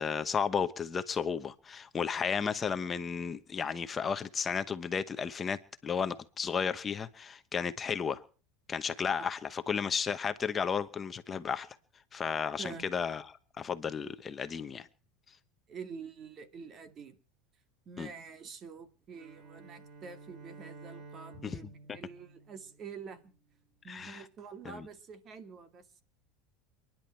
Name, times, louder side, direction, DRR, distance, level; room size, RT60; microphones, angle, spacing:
voice 1, 0.0-8.2 8.7-11.7 12.1-13.2 13.6-14.9 18.0-18.1 21.4-21.6 23.9-24.2 24.6-24.8, left 6 dB, 25° left, 1.0 m, -33 dB
voice 2, 12.6-12.9 15.7-17.2 17.9-23.3 23.8-26.0, right 5 dB, 35° right, 2.2 m, -47 dB
Bowed string instrument, 19.1-23.3, right 3 dB, 55° right, 2.9 m, -52 dB
29.0 x 10.5 x 4.5 m
supercardioid pair, 125°, 0 cm